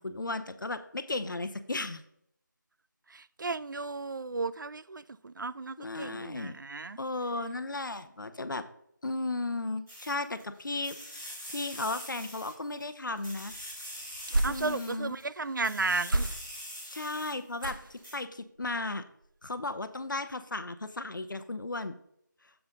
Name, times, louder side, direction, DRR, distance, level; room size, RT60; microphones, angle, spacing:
voice 1, 0.0-2.0 5.8-6.6 7.0-8.7 9.0-11.0 11.2-13.5 14.4-15.2 16.8-19.0 19.4-21.9, left 2 dB, 75° left, 0.8 m, -35 dB
voice 2, 3.1-7.0 14.4-16.3, right 3 dB, 70° right, 0.4 m, -34 dB
sound 1, 9.9-10.4 10.8-12.8 13.2-15.2 15.6-17.6 18.0-18.1, equal, 5° right, 1.4 m, -44 dB
sound 2, 13.5-15.1 16.0-16.8 17.6-18.1 18.6-18.9 19.2-19.3, right 2 dB, 90° right, 0.9 m, -33 dB
7.0 x 5.5 x 3.9 m
figure-of-eight pair, 180°, 11 cm